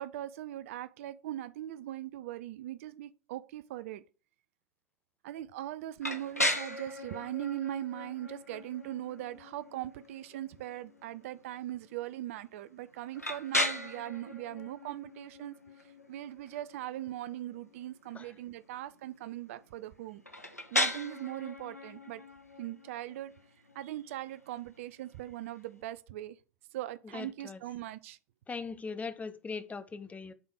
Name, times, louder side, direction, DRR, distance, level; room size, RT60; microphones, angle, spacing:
voice 1, 0.0-4.0 5.2-15.6 16.1-20.2 20.7-22.2 22.6-23.3 23.7-26.4 26.7-28.2, right 13 dB, 60° right, 0.5 m, -40 dB
sound 1, 6.0-25.8, left 1 dB, 90° left, 1.0 m, -38 dB
voice 2, 27.1-27.6 28.5-30.3, left 4 dB, 20° left, 0.8 m, -40 dB
8.0 x 3.7 x 6.3 m
figure-of-eight pair, 75°, 8 cm